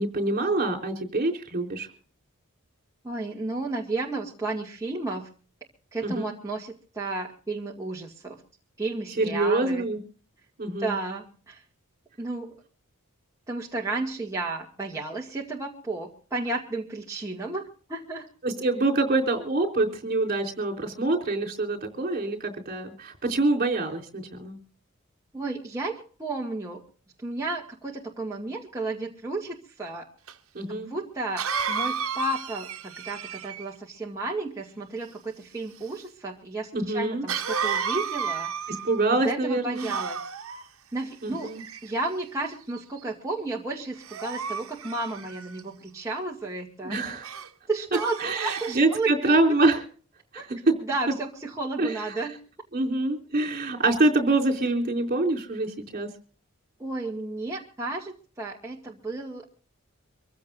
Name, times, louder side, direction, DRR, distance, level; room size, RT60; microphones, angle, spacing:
voice 1, 0.0-1.9 6.0-6.3 9.2-10.0 10.6-10.9 18.4-24.6 30.5-30.9 36.7-37.3 38.7-39.9 41.2-41.6 46.8-47.3 48.2-49.8 50.3-50.7 51.8-52.0 52.7-56.1, right 2 dB, 45° right, 3 dB, 3.7 m, -25 dB
voice 2, 3.0-5.3 5.9-8.4 8.8-9.8 10.8-11.6 12.2-12.6 13.5-18.3 25.3-26.8 27.2-30.0 30.7-38.5 39.1-40.2 40.9-41.5 41.8-47.0 47.7-49.4 50.4-52.4 56.8-59.5, right 2 dB, 15° right, -3 dB, 2.1 m, -33 dB
Cough, 30.3-30.4 31.4-33.7 37.3-39.0 39.7-40.6 41.4-42.1 42.7-43.0 44.0-45.6 47.2-47.5 47.9-48.8, right 6 dB, 70° right, 1.3 m, -32 dB
25.0 x 15.5 x 2.6 m, 0.41 s
head